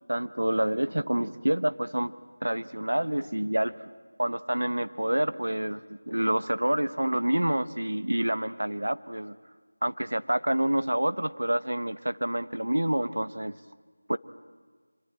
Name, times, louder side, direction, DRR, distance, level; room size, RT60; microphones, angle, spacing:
voice 1, 0.1-2.1 2.4-3.7 4.2-9.4 9.8-13.6 14.1-14.2, right 1 dB, 85° right, 13 dB, 1.0 m, -27 dB
25.5 x 23.0 x 8.9 m, 1.5 s
figure-of-eight pair, 175°, 0 cm